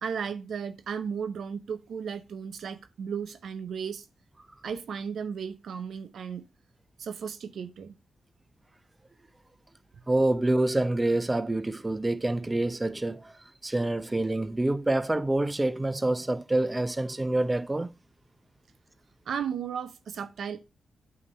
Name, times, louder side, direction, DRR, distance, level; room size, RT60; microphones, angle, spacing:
voice 1, 0.0-4.1 4.6-6.5 7.0-7.9 19.3-20.6, right 7 dB, 75° right, 0.6 m, -35 dB
voice 2, 10.1-13.3 13.6-17.9, right 2 dB, 20° right, 0.6 m, -27 dB
8.3 x 2.8 x 5.3 m
cardioid pair, 55°, 0 cm